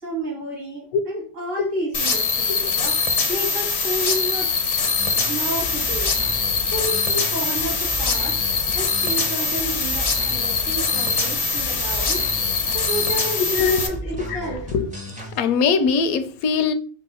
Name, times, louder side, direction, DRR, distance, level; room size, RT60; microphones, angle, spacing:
voice 1, 0.0-4.5 5.2-6.1 6.6-8.4 8.7-12.2 12.7-14.6, right 1 dB, 60° right, 2.3 m, -30 dB
sound 1, 1.9-13.9, left 4 dB, 50° left, 0.4 m, -23 dB
sound 2, 5.0-15.4, right 1 dB, 10° right, 0.5 m, -35 dB
voice 2, 13.6-14.0 14.3-14.4 14.7-14.9 15.4-16.7, left 5 dB, 85° left, 1.0 m, -21 dB
4.6 x 2.2 x 4.1 m
omnidirectional pair, 1.5 m